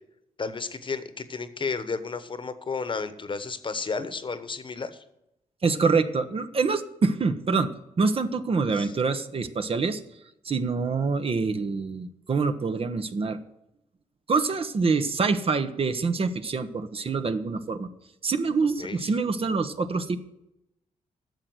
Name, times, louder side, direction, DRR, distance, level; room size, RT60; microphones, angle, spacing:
voice 1, 0.4-5.0 8.7-8.9 18.8-19.1, left 4 dB, 40° left, 12 dB, 1.1 m, -32 dB
voice 2, 5.6-7.7 8.0-10.0 10.4-13.4 14.3-17.9 18.2-20.2, right 4 dB, 45° right, 10 dB, 1.0 m, -25 dB
10.5 x 6.7 x 7.9 m, 0.85 s
cardioid pair, 75°, 13 cm